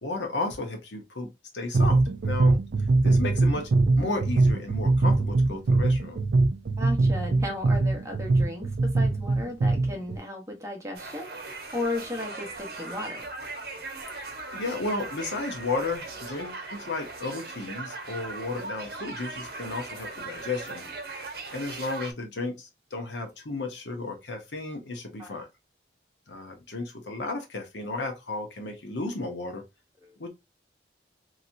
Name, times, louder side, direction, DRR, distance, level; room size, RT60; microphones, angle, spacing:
voice 1, 0.0-2.6 3.0-3.7 4.0-6.2 14.2-20.9 21.5-25.5 26.3-29.6 30.2-30.3, left 2 dB, 90° left, 1.1 m, -33 dB
sound 1, 1.7-10.2, right 2 dB, 75° right, 0.4 m, -23 dB
voice 2, 6.8-13.2 25.2-25.4 30.0-30.2, left 1 dB, 15° right, 0.9 m, -35 dB
sound 2, 11.0-22.1, right 3 dB, 60° right, 0.8 m, -39 dB
3.0 x 2.8 x 2.5 m
head